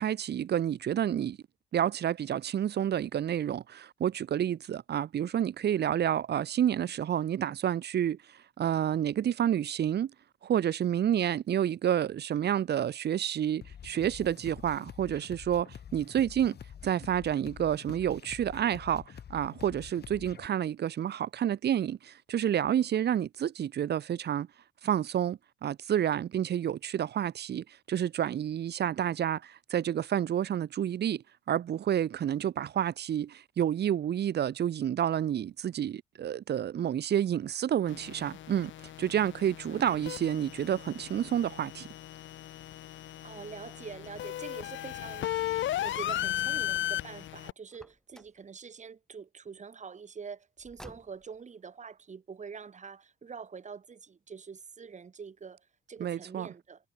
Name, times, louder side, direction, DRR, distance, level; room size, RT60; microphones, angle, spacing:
voice 1, 0.0-1.4 1.7-8.2 8.6-10.1 10.4-16.6 16.8-19.0 19.3-24.5 24.8-38.7 39.0-41.9 56.0-56.5, right 10 dB, 55° right, 1.1 m, -29 dB
sound 1, 13.6-20.5, left 8 dB, 55° left, 2.4 m, -47 dB
sound 2, 37.9-47.5, left 13 dB, 75° left, 1.2 m, -36 dB
voice 2, 39.7-40.0 43.2-45.4 45.7-56.9, right 6 dB, 35° right, 2.0 m, -45 dB
Car, 47.7-48.5 50.6-51.5, equal, 5° left, 2.1 m, -52 dB
cardioid pair, 90°, 20 cm